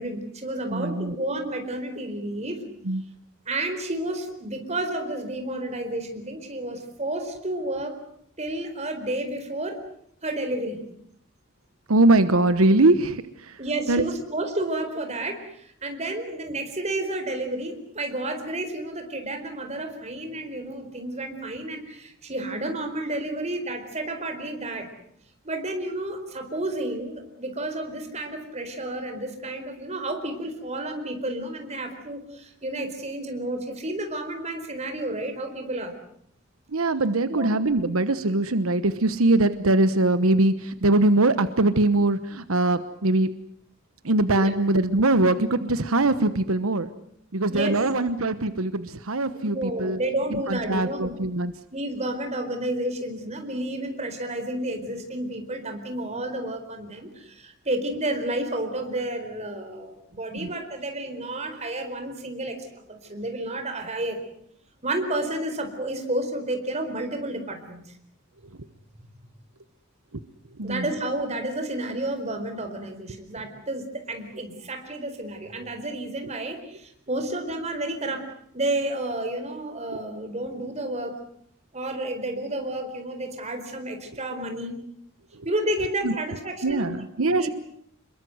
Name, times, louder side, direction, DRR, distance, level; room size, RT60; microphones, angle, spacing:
voice 1, 0.0-2.6 3.5-8.0 8.4-9.8 10.2-10.8 13.6-24.9 25.4-35.9 37.3-37.5 44.4-44.5 47.5-47.7 49.3-51.2 51.7-64.2 64.8-67.8 70.6-78.2 78.5-81.2 81.7-84.8 85.4-86.9 87.2-87.5, right 1 dB, 30° right, 6 dB, 4.4 m, -31 dB
voice 2, 0.7-1.1 2.9-3.0 11.9-13.2 13.9-14.0 36.7-43.3 44.0-46.9 47.3-50.0 50.5-51.5 70.6-70.8 86.0-86.1 86.6-87.5, right 2 dB, 85° right, 12 dB, 1.2 m, -22 dB
27.0 x 22.0 x 8.0 m, 0.69 s
head